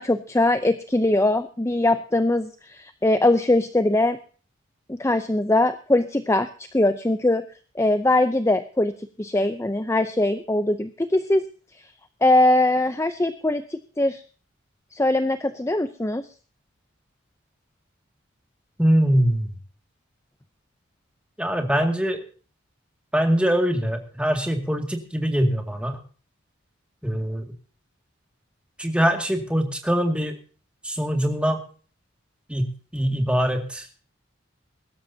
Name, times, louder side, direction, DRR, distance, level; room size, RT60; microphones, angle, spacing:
voice 1, 0.0-4.2 4.9-6.5 6.7-7.4 7.8-11.4 12.2-14.2 14.9-16.2, left 2 dB, 15° left, 10 dB, 0.6 m, -21 dB
voice 2, 18.8-19.5 21.4-22.2 23.1-26.0 27.0-27.5 28.8-30.4 30.8-31.6 32.5-33.9, equal, 5° right, 4 dB, 2.1 m, -23 dB
22.0 x 12.5 x 2.8 m, 0.40 s
head